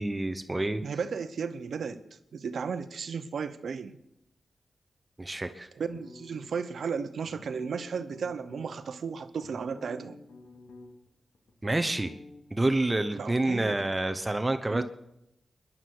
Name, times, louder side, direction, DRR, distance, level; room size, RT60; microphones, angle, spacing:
voice 1, 0.0-0.8 5.2-5.7 11.6-12.2 12.5-14.8, right 2 dB, 25° right, 8 dB, 0.9 m, -28 dB
voice 2, 0.8-2.0 2.3-4.0 5.8-10.2 13.2-13.8 14.7-14.8, right 6 dB, 75° right, 11 dB, 0.9 m, -34 dB
sound 1, 5.9-6.7 7.2-8.7 9.2-11.1 11.3-12.4, left 2 dB, 85° left, 3.0 m, -50 dB
22.0 x 11.0 x 4.7 m, 0.83 s
cardioid pair, 55°, 0 cm